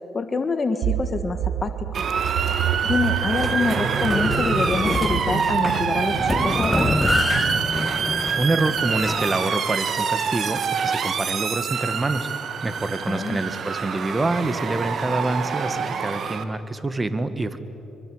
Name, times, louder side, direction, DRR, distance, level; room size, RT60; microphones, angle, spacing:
voice 1, 0.1-1.9 2.8-6.9 13.1-13.4, left 4 dB, 35° left, 8 dB, 1.6 m, -26 dB
sound 1, 0.8-7.7, right 11 dB, 85° right, 0.8 m, -29 dB
Motor vehicle (road) / Siren, 1.9-16.4, right 6 dB, 55° right, 1.6 m, -26 dB
sound 2, 3.3-9.5, left 2 dB, 15° left, 0.6 m, -27 dB
voice 2, 8.4-12.3 12.6-17.6, right 2 dB, 20° right, 12 dB, 1.5 m, -26 dB
25.0 x 24.0 x 7.9 m, 2.9 s
cardioid pair, 90°, 0 cm